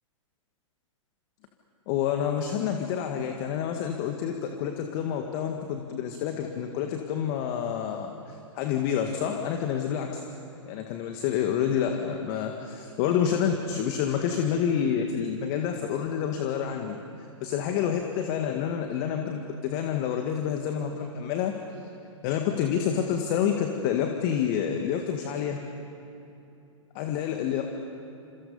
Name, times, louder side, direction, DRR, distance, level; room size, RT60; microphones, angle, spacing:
voice 1, 1.9-10.3 10.7-21.9 22.2-25.6 27.0-27.7, left 8 dB, 40° left, 4 dB, 1.9 m, -28 dB
29.5 x 27.5 x 5.6 m, 2.9 s
figure-of-eight pair, 110°, 17 cm